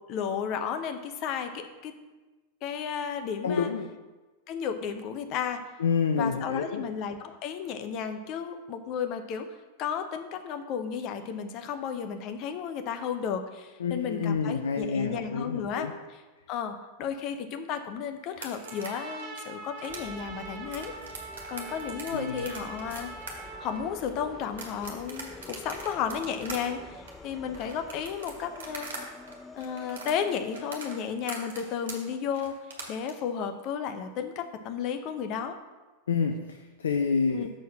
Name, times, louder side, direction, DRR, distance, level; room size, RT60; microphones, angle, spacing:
voice 1, 0.1-1.9 2.6-3.7 4.5-5.6 6.2-9.5 9.8-15.9 16.5-23.1 23.6-29.1 29.5-32.6 32.9-35.6 37.3-37.5, left 7 dB, 40° left, 7 dB, 0.7 m, -33 dB
voice 2, 3.4-4.0 5.8-6.8 13.8-15.9 22.0-22.5 36.1-37.5, left 5 dB, 65° left, 6 dB, 0.5 m, -28 dB
sound 1, 18.3-29.0 29.3-33.1, right 4 dB, 65° right, 1.5 m, -42 dB
Trumpet, 18.6-23.9, right 4 dB, 35° right, 1.0 m, -42 dB
sound 2, 19.9-31.0, left 3 dB, 10° left, 0.5 m, -47 dB
6.4 x 4.6 x 6.2 m, 1.2 s
figure-of-eight pair, 90°, 0 cm